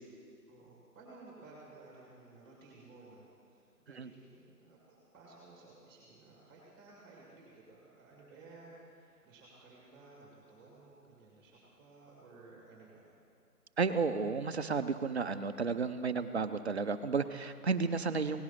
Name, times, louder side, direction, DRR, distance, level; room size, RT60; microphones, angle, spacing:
voice 1, 0.5-13.1, right 3 dB, 15° right, -4 dB, 2.0 m, -56 dB
voice 2, 13.8-18.4, right 4 dB, 45° right, 9 dB, 0.6 m, -32 dB
17.5 x 10.5 x 5.7 m, 2.5 s
figure-of-eight pair, 160°, 48 cm